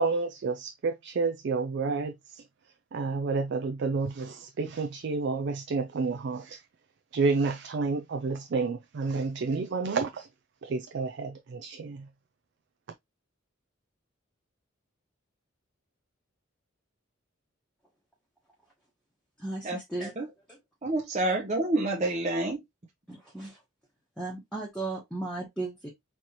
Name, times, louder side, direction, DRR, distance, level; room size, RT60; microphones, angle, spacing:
voice 1, 0.0-2.4 2.9-6.6 7.1-10.3 10.6-12.1, right 4 dB, 55° right, 0.4 m, -30 dB
voice 2, 19.4-20.1 23.1-23.6 24.2-25.9, right 2 dB, 5° left, 1.0 m, -35 dB
voice 3, 20.8-22.6, right 2 dB, 35° right, 0.7 m, -28 dB
4.2 x 3.0 x 2.9 m
head